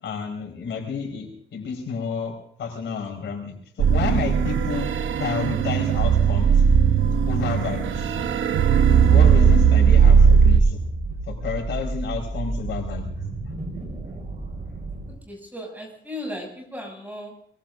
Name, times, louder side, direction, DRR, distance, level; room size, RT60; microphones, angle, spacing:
voice 1, 0.0-4.9 5.2-6.6 7.3-8.1 9.1-10.8 11.3-13.1, left 6 dB, 75° left, 3 dB, 4.6 m, -30 dB
sound 1, 3.8-10.6, right 7 dB, 90° right, 0.9 m, -17 dB
sound 2, 7.5-15.1, right 2 dB, 40° right, 5.4 m, -33 dB
voice 2, 15.1-17.5, left 1 dB, 10° right, 1 dB, 6.6 m, -36 dB
22.5 x 22.5 x 2.6 m, 0.64 s
wide cardioid pair, 140°, 19 cm